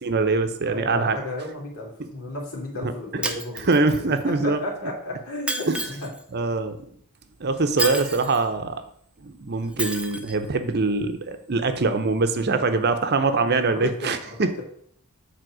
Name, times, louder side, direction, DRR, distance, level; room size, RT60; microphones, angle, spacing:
voice 1, 0.0-1.2 2.8-2.9 3.7-4.6 5.7-5.8 6.3-6.8 7.4-8.8 9.2-14.6, right 3 dB, 45° right, 9 dB, 0.8 m, -23 dB
voice 2, 0.6-6.1 12.7-12.9 13.6-14.6, left 2 dB, 65° left, -2 dB, 2.8 m, -34 dB
Shatter, 3.2-4.2 5.5-6.2 7.8-8.4 9.8-10.4, right 2 dB, 5° right, 0.6 m, -30 dB
7.8 x 4.3 x 6.2 m, 0.64 s
head